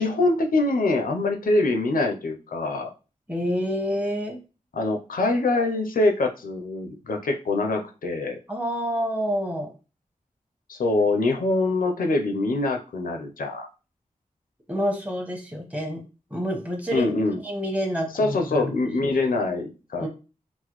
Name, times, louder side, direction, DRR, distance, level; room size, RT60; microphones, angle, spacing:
voice 1, 0.0-2.9 4.7-8.4 10.7-13.7 16.9-17.4 18.1-20.1, left 2 dB, 90° left, 4 dB, 0.6 m, -24 dB
voice 2, 3.3-4.4 8.5-9.7 14.7-16.0 16.3-17.1 17.4-18.7 20.0-20.1, equal, 10° right, 2 dB, 1.0 m, -28 dB
3.8 x 2.1 x 3.0 m, 0.33 s
wide cardioid pair, 70°, 14 cm